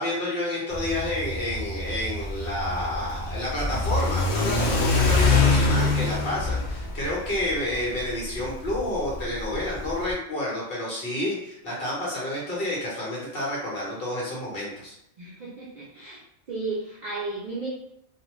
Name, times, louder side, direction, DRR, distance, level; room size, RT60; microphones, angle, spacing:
voice 1, 0.0-14.9, left 1 dB, 45° left, -5 dB, 1.1 m, -29 dB
Car / Accelerating revving vroom, 0.7-10.1, left 3 dB, 75° left, 0.4 m, -25 dB
voice 2, 15.2-16.2 16.5-17.7, right 3 dB, 85° right, -4 dB, 0.4 m, -34 dB
2.4 x 2.4 x 3.0 m, 0.77 s
omnidirectional pair, 1.4 m